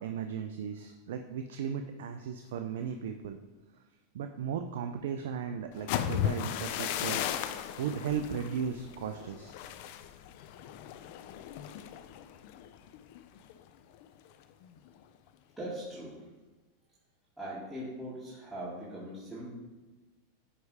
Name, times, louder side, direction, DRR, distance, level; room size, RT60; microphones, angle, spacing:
voice 1, 0.0-3.4 4.1-7.2 7.5-9.6, right 7 dB, 75° right, 6 dB, 0.4 m, -36 dB
sound 1, 5.7-13.6 13.9-14.3 14.6-15.0, left 10 dB, 60° left, 0.5 m, -36 dB
voice 2, 15.6-16.2 17.4-19.5, right 1 dB, 10° right, -11 dB, 2.0 m, -40 dB
9.3 x 3.3 x 4.8 m, 1.2 s
hypercardioid pair, 115°, 0 cm